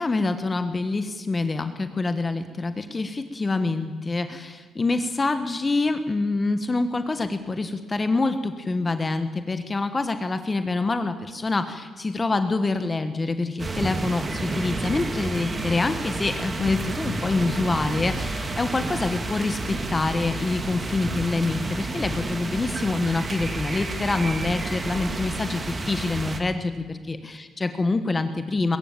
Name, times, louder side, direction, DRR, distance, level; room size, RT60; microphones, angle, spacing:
voice 1, 0.0-28.8, left 3 dB, 25° left, 9 dB, 1.2 m, -26 dB
sound 1, 13.6-26.4, right 2 dB, 30° right, 2.3 m, -30 dB
21.5 x 15.5 x 9.0 m, 1.5 s
cardioid pair, 90°, 0 cm